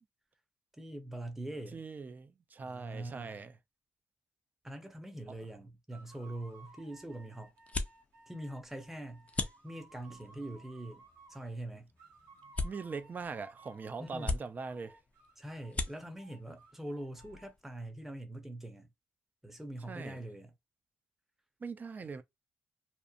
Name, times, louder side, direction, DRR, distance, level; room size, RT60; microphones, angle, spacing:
voice 1, 0.8-1.8 2.6-3.4 4.6-7.5 8.3-11.0 11.3-11.9 14.0-14.3 15.4-18.9 19.4-20.5, right 1 dB, 5° right, 0.7 m, -43 dB
voice 2, 1.7-3.5 12.6-15.0 19.9-20.2 21.6-22.2, right 4 dB, 40° right, 0.4 m, -41 dB
sound 1, 5.9-11.6 12.0-14.3 14.6-17.5, right 3 dB, 80° right, 0.8 m, -59 dB
sound 2, 6.3-17.8, left 3 dB, 30° left, 0.5 m, -43 dB
2.8 x 2.0 x 2.4 m
cardioid pair, 75°, 5 cm